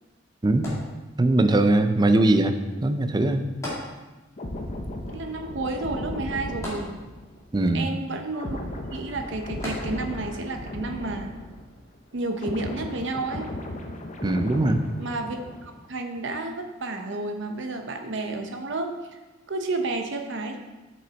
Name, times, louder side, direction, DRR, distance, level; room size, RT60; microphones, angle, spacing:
sound 1, 0.6-1.5 3.6-4.5 4.8-4.9 6.6-7.5 9.6-10.3 11.0-11.1, left 1 dB, 15° left, 2.2 m, -37 dB
voice 1, 1.2-2.5 2.8-3.4 7.5-7.9 14.2-14.8, right 2 dB, 20° right, 8 dB, 0.5 m, -20 dB
sound 2, 4.4-11.9 12.1-15.8 16.1-16.4, left 1 dB, 40° left, 0.7 m, -36 dB
voice 2, 5.1-6.9 7.7-8.6 8.9-11.3 12.1-13.5 15.0-19.2 19.5-20.6, right 2 dB, 65° right, 5 dB, 0.8 m, -31 dB
7.4 x 6.1 x 4.1 m, 1.2 s
head